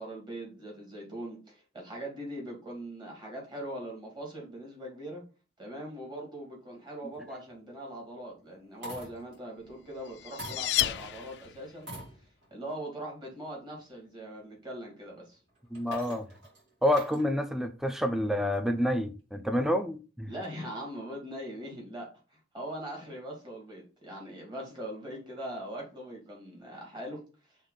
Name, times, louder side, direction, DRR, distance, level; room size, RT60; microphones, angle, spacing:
voice 1, 0.0-5.2 5.6-11.9 12.5-15.4 20.3-27.2, right 1 dB, 25° right, 2.3 m, -41 dB
sound 1, 7.1-7.5 8.5-9.4 10.4-11.1 11.8-12.6 13.3-13.4 15.5-17.3 18.5-19.0, right 1 dB, 65° right, 3.5 m, -45 dB
sound 2, 9.7-11.8, left 14 dB, 65° left, 0.3 m, -32 dB
voice 2, 15.7-16.3 16.8-20.3, left 1 dB, ahead, 0.4 m, -28 dB
6.6 x 3.6 x 4.0 m
head